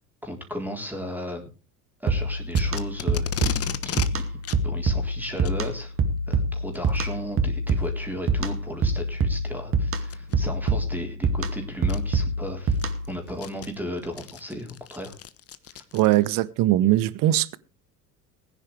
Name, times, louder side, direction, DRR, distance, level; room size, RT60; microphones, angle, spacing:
voice 1, 0.2-1.5 2.0-4.4 4.6-5.9 6.3-12.8 13.1-15.2, equal, 5° right, 3.7 m, -35 dB
sound 1, 2.1-13.2, right 2 dB, 30° right, 2.3 m, -26 dB
Packing tape duct tape, 2.5-4.1 4.4-4.6 5.3-5.6 6.7-7.0 7.7-7.8 8.4-8.5 10.0-10.3 11.4-11.5 11.9-12.0 12.5-16.4, left 10 dB, 30° left, 1.2 m, -35 dB
voice 2, 15.9-17.6, right 15 dB, 45° right, 1.1 m, -21 dB
20.0 x 10.0 x 3.3 m
figure-of-eight pair, 75°, 45 cm